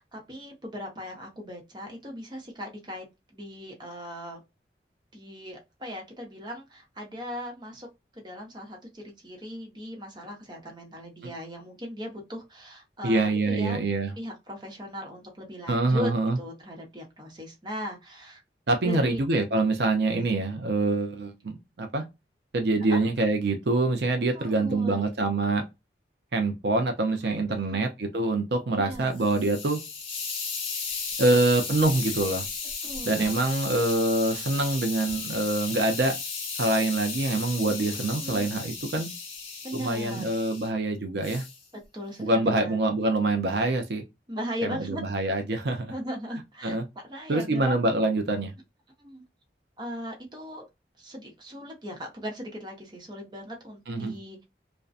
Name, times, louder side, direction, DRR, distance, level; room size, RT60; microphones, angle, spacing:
voice 1, 0.0-3.0 3.3-4.4 5.1-7.9 8.1-13.8 14.2-16.1 16.4-18.4 18.8-19.2 20.1-20.3 22.9-23.0 24.3-25.1 27.5-27.8 28.7-29.2 32.8-33.4 37.9-38.5 39.6-40.3 41.9-42.8 44.3-45.0 45.9-46.8 47.1-47.8 49.0-49.2 49.8-50.6 51.0-54.4, equal, 25° right, 0.8 m, -38 dB
voice 2, 13.0-14.1 15.7-16.4 18.7-22.0 22.5-25.6 26.3-29.8 31.2-32.4 33.0-36.2 36.6-39.1 39.7-41.4 42.2-44.0 44.6-45.9 46.6-46.8 47.3-48.5 53.9-54.1, right 2 dB, 70° right, 0.5 m, -25 dB
Hiss, 28.9-40.7 41.2-41.6, left 5 dB, 30° left, 0.8 m, -35 dB
2.5 x 2.2 x 2.3 m
head